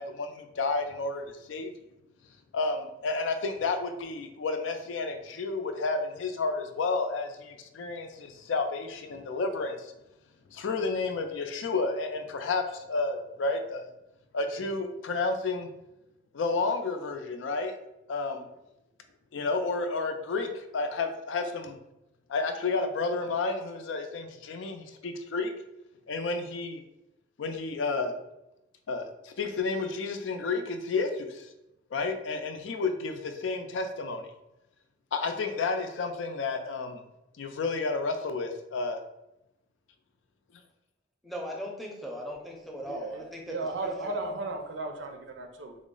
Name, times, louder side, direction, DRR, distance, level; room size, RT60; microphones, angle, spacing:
voice 1, 0.0-1.7 2.5-9.9 10.5-13.8 14.3-15.7 16.3-17.7 18.1-18.5 19.3-21.8 22.3-25.5 26.1-26.8 27.4-28.1 28.9-31.5 31.9-34.3 35.1-37.0 37.4-39.0, left 3 dB, 85° left, 6 dB, 0.4 m, -31 dB
voice 2, 41.2-44.2, equal, ahead, -1 dB, 0.5 m, -39 dB
voice 3, 42.9-45.8, right 2 dB, 75° right, 4 dB, 0.6 m, -35 dB
3.6 x 2.0 x 3.8 m, 0.92 s
head